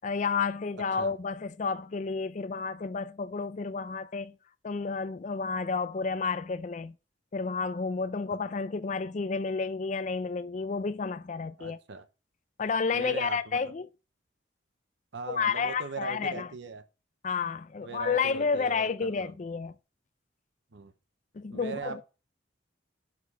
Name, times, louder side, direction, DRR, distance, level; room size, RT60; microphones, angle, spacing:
voice 1, 0.0-4.3 4.6-6.9 7.3-11.8 12.6-13.9 15.3-16.5 17.2-19.7 21.3-22.0, left 5 dB, 40° left, 0.4 m, -31 dB
voice 2, 11.6-12.0 12.9-13.6 15.1-16.8 17.8-19.3 20.7-20.9 21.5-22.0, right 4 dB, 65° right, 0.7 m, -40 dB
5.9 x 5.9 x 6.0 m
head